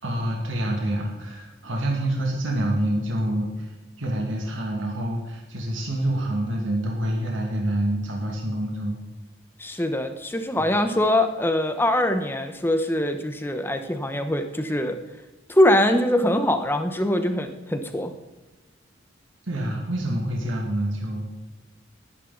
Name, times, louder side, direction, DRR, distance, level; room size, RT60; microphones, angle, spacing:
voice 1, 0.0-9.0 19.4-21.2, right 1 dB, 80° right, -1 dB, 2.3 m, -27 dB
voice 2, 9.6-15.0 15.5-18.1, left 1 dB, 10° left, 7 dB, 1.0 m, -23 dB
19.0 x 10.0 x 4.0 m, 1.1 s
head